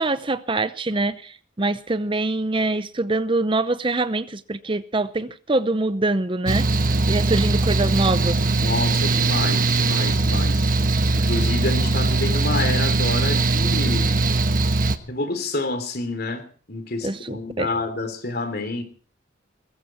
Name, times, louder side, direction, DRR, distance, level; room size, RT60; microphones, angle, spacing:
voice 1, 0.0-6.7 7.1-8.4 17.0-17.7, right 2 dB, 25° right, 0.7 m, -24 dB
Mechanical fan, 6.5-15.0, right 3 dB, 45° right, 1.3 m, -20 dB
voice 2, 8.6-10.6 11.1-14.1 15.1-18.8, left 2 dB, 50° left, 3.1 m, -28 dB
21.0 x 14.5 x 4.4 m
head